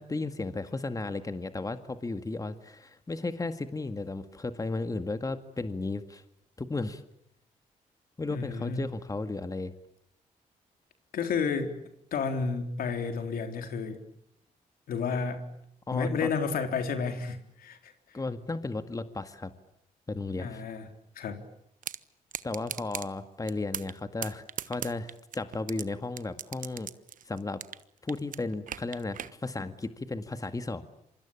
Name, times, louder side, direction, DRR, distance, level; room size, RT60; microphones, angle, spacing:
voice 1, 0.0-6.2 6.6-7.0 8.2-9.7 15.9-16.3 18.1-19.5 20.1-20.6 22.4-26.9 27.3-27.6 28.0-30.8, left 3 dB, 25° left, 10 dB, 1.9 m, -34 dB
voice 2, 8.3-8.8 11.1-11.7 12.1-14.0 14.9-15.5 15.9-17.9 20.4-20.9 21.2-21.4, left 5 dB, 80° left, 6 dB, 3.8 m, -31 dB
sound 1, 21.8-22.0 22.3-23.1 23.5-24.0 24.2-25.8 26.2-27.8 28.1-29.3, right 9 dB, 65° right, 1.2 m, -37 dB
27.5 x 24.5 x 8.8 m, 0.76 s
cardioid pair, 75°, 15 cm